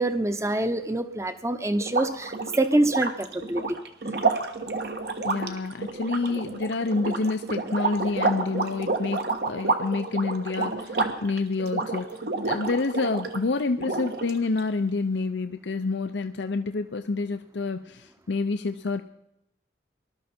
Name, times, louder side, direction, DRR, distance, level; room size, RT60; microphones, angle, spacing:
voice 1, 0.0-3.8, right 2 dB, 15° right, 10 dB, 0.8 m, -25 dB
sound 1, 1.8-13.4 13.8-14.6, right 3 dB, 60° right, 1.4 m, -29 dB
voice 2, 5.2-9.2 9.5-12.2 12.4-19.0, left 3 dB, 85° left, 8 dB, 0.6 m, -28 dB
20.0 x 12.5 x 4.4 m, 0.81 s
head